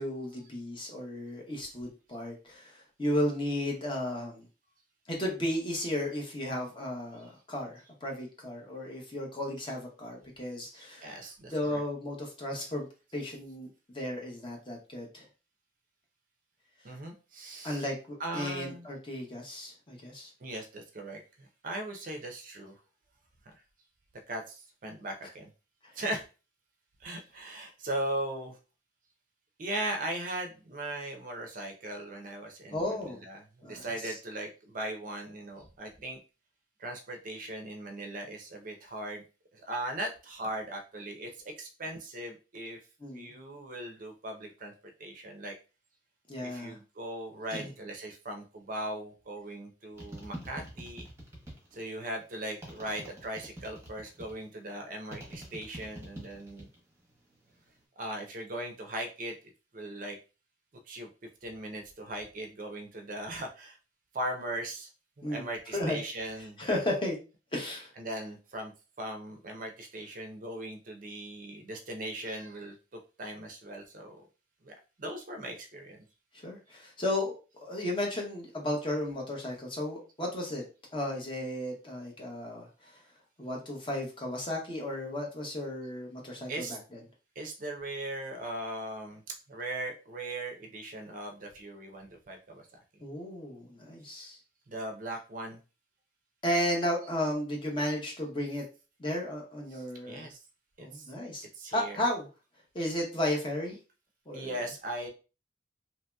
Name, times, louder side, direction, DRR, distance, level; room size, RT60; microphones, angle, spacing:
voice 1, 0.0-4.4 5.1-11.1 11.5-12.9 13.1-13.7 13.9-15.2 17.6-20.3 25.8-25.9 32.7-33.2 33.6-34.1 43.0-43.3 46.3-46.8 47.5-47.7 65.2-65.4 65.7-66.0 66.6-67.2 67.5-67.9 76.4-77.3 77.6-80.6 80.9-82.7 83.4-86.8 93.0-94.4 96.4-98.6 99.0-100.3 100.8-101.5 101.7-102.2 102.7-103.8 104.3-104.5, left 1 dB, 25° left, 0 dB, 0.7 m, -34 dB
voice 2, 10.7-11.8 12.5-12.7 16.8-17.9 18.2-18.9 20.4-22.8 24.3-25.5 26.0-26.3 27.0-28.6 29.6-36.2 36.8-39.2 39.5-42.8 43.1-44.7 45.0-45.5 46.4-51.1 51.7-56.7 58.0-59.3 59.7-60.2 60.9-61.1 61.4-63.8 64.1-64.9 65.2-66.6 67.9-68.7 69.0-74.2 74.6-76.0 86.5-86.8 87.4-89.2 89.5-92.7 94.1-94.3 94.7-95.6 99.7-100.4 100.8-101.0 101.5-102.1 104.3-105.1, right 1 dB, 45° right, 4 dB, 0.5 m, -39 dB
sound 1, 50.0-51.8 52.6-54.4 55.1-56.8 57.1-57.7, right 1 dB, 15° right, 0.9 m, -45 dB
2.9 x 2.7 x 2.2 m, 0.32 s
head